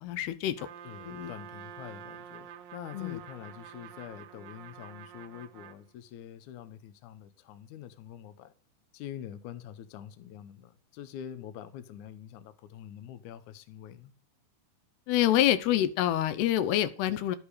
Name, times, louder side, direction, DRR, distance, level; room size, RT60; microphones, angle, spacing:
voice 1, 0.0-0.7 1.0-1.3 2.9-3.2 15.1-17.4, left 12 dB, 85° left, 2.9 m, -27 dB
Trumpet, 0.6-5.8, right 9 dB, 75° right, 2.4 m, -48 dB
voice 2, 0.8-8.5 8.9-14.1, left 10 dB, 70° left, 1.9 m, -45 dB
12.0 x 8.4 x 4.9 m
omnidirectional pair, 4.5 m